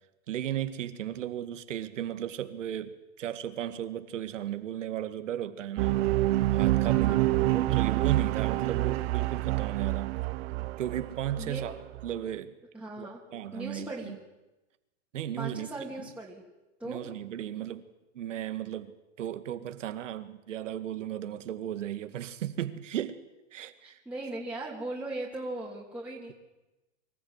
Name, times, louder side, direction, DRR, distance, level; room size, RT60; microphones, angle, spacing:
voice 1, 0.3-6.0 6.5-7.2 7.5-10.2 10.8-11.7 12.0-12.5 13.0-14.2 15.1-15.7 16.8-17.8 18.1-23.2 23.5-24.0, right 11 dB, 80° right, 2.0 m, -35 dB
sound 1, 5.8-12.1, right 18 dB, 55° right, 1.2 m, -27 dB
voice 2, 6.8-7.3 11.4-11.6 12.7-13.2 13.5-14.2 15.4-16.4 16.8-17.0 23.8-26.3, right 2 dB, 5° right, 2.8 m, -38 dB
24.5 x 14.5 x 8.1 m
hypercardioid pair, 135°, 37 cm